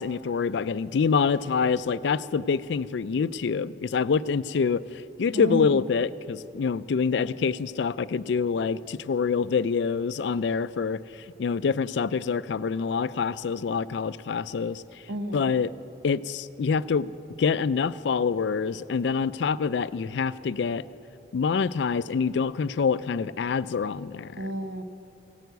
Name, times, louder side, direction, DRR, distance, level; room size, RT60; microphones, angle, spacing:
voice 1, 0.0-14.8 15.3-15.7 16.0-17.1 17.4-20.8 21.3-24.4, left 5 dB, 70° left, 16 dB, 0.4 m, -26 dB
voice 2, 5.3-5.9 15.1-15.5 24.4-24.8, right 1 dB, 70° right, 8 dB, 0.8 m, -31 dB
17.0 x 9.2 x 8.1 m, 2.8 s
head